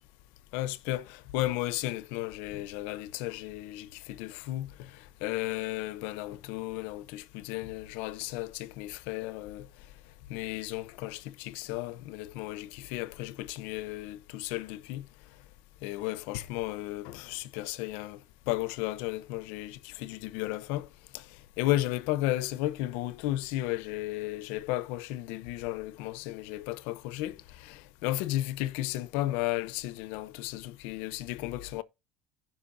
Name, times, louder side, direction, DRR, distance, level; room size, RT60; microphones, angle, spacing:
voice 1, 0.5-9.7 10.3-15.1 15.8-18.2 18.5-20.9 21.1-21.3 21.6-31.8, left 16 dB, 70° left, 0.8 m, -34 dB
15.5 x 5.5 x 2.7 m
cardioid pair, 145°, 3 cm